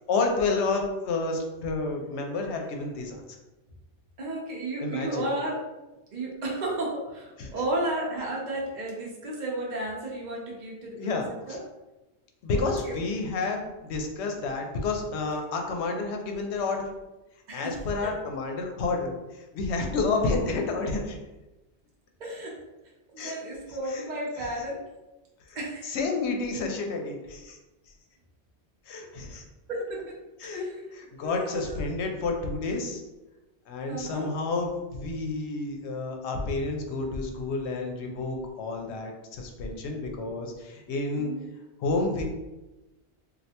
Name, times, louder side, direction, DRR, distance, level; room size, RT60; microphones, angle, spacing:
voice 1, 0.1-3.2 4.8-5.3 7.4-7.5 10.9-11.6 12.4-16.9 17.5-19.2 19.5-21.2 23.2-23.4 23.9-24.1 24.4-24.5 25.5-25.6 25.9-27.6 28.9-29.4 30.4-30.6 30.9-33.0 33.7-41.3 41.8-42.2, left 3 dB, 75° left, 3 dB, 0.8 m, -30 dB
voice 2, 4.2-5.6 6.1-11.2 11.5-11.6 12.5-13.0 17.5-17.7 18.0-18.1 22.2-22.6 23.1-24.8 25.5-26.0 29.7-30.1 30.4-30.7 31.2-31.8 33.9-34.3 38.8-38.9 41.1-41.5, right 1 dB, 50° right, -3 dB, 0.7 m, -33 dB
3.2 x 2.4 x 2.7 m, 1.0 s
omnidirectional pair, 1.2 m